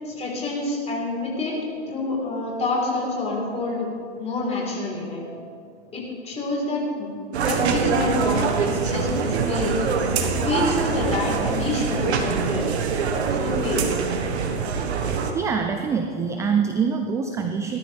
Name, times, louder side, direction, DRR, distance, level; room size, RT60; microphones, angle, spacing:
voice 1, 0.0-1.6 1.9-3.9 4.2-5.2 5.9-7.1 7.4-9.9 10.2-12.7 13.3-14.0, left 2 dB, 20° left, -3 dB, 4.0 m, -27 dB
sound 1, 7.3-15.3, right 5 dB, 75° right, 1.5 m, -24 dB
voice 2, 15.3-17.8, right 6 dB, 10° right, 5 dB, 0.3 m, -24 dB
18.0 x 13.0 x 3.5 m, 2.3 s
hypercardioid pair, 125°, 33 cm